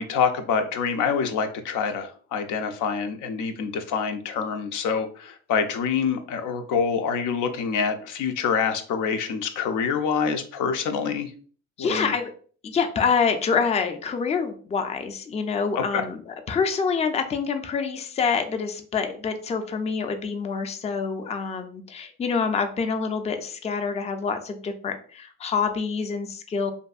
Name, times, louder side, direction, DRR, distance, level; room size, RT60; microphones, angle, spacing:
voice 1, 0.0-11.3 11.8-12.1 15.8-16.1, left 6 dB, 85° left, 6 dB, 0.5 m, -26 dB
voice 2, 11.8-12.3 12.6-26.7, left 5 dB, 20° left, 7 dB, 0.3 m, -26 dB
2.6 x 2.5 x 2.3 m, 0.44 s
cardioid pair, 90°, 30 cm